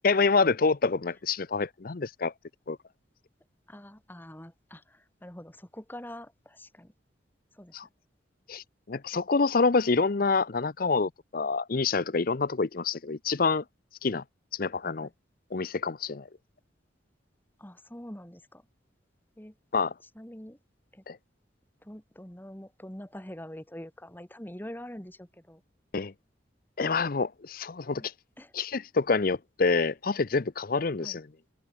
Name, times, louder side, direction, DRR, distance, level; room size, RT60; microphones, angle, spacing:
voice 1, 0.0-2.3 2.7-2.8 7.7-7.9 8.5-13.6 14.0-14.2 14.5-15.1 15.5-16.3 19.7-19.9 21.1-21.2 25.9-26.1 26.8-28.1 28.5-31.2, left 4 dB, 50° left, 0.6 m, -27 dB
voice 2, 3.7-6.9 7.5-7.8 9.1-9.2 15.0-15.1 17.6-18.7 19.4-19.6 20.2-20.6 20.9-21.0 21.8-25.6 28.0-28.1 28.4-28.5 31.0-31.2, left 1 dB, 10° left, 1.8 m, -45 dB
head